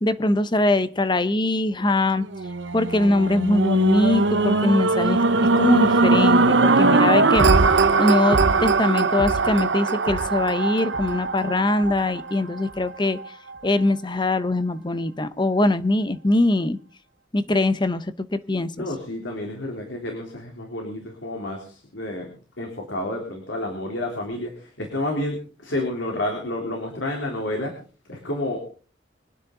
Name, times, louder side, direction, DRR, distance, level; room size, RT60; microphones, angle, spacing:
voice 1, 0.0-2.2 2.7-5.2 5.6-7.5 8.0-13.2 13.6-16.8 17.3-18.0 18.3-18.7, left 2 dB, 25° left, 12 dB, 0.9 m, -22 dB
sound 1, 2.3-12.6 13.2-13.3, right 3 dB, 70° right, 0.9 m, -20 dB
voice 2, 18.8-22.3 22.6-27.7 28.1-28.7, left 1 dB, 75° left, 1 dB, 3.7 m, -30 dB
25.0 x 9.7 x 3.9 m, 0.38 s
head